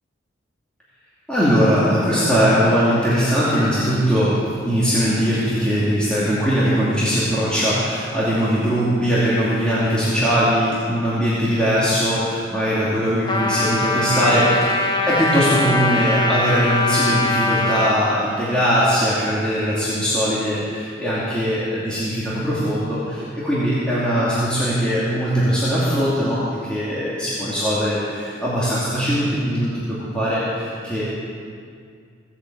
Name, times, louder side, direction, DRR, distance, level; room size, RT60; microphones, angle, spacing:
voice 1, 1.3-4.4 4.6-31.0, equal, 5° left, -10 dB, 2.6 m, -20 dB
Trumpet, 13.3-18.0, left 2 dB, 25° left, 1.2 m, -21 dB
17.0 x 8.1 x 7.9 m, 2.2 s
head